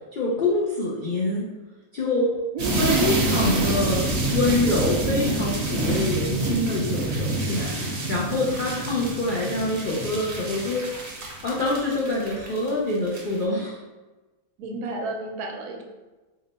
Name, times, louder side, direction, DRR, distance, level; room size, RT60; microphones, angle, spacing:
voice 1, 0.1-1.4 1.9-2.3 2.7-4.0 4.3-10.9 11.4-13.8, left 2 dB, 75° left, -4 dB, 0.4 m, -26 dB
voice 2, 2.5-3.2 14.6-15.8, right 4 dB, 85° right, 3 dB, 1.1 m, -30 dB
sound 1, 2.6-12.7 13.1-13.3, right 2 dB, 50° right, 0.7 m, -27 dB
3.9 x 2.1 x 4.0 m, 1.2 s
omnidirectional pair, 1.6 m